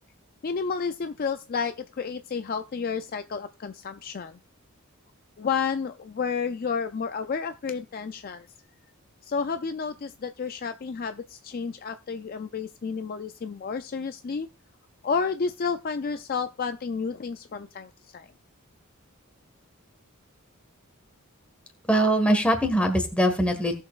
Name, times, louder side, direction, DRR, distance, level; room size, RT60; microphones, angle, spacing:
voice 1, 0.4-4.4 5.4-8.5 9.2-14.5 15.0-18.3, left 5 dB, 40° left, 8 dB, 0.4 m, -31 dB
voice 2, 21.9-23.8, right 1 dB, 5° left, 4 dB, 1.5 m, -22 dB
18.0 x 6.5 x 2.4 m, 0.30 s
head